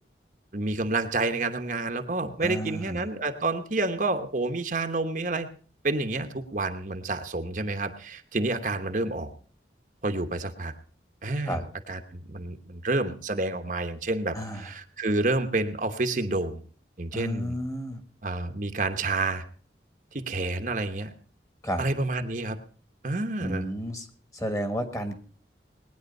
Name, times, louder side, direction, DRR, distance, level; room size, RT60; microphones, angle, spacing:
voice 1, 0.5-5.5 5.8-9.3 10.0-10.7 11.2-16.6 17.0-17.6 18.2-19.4 20.1-21.1 21.8-22.6 23.0-23.6, right 2 dB, 45° right, 6 dB, 1.0 m, -29 dB
voice 2, 2.4-3.0 11.5-11.6 14.3-14.7 17.1-18.0 21.6-21.8 23.4-24.0 24.3-25.2, equal, 20° left, 8 dB, 1.6 m, -31 dB
19.5 x 9.8 x 5.3 m, 0.42 s
head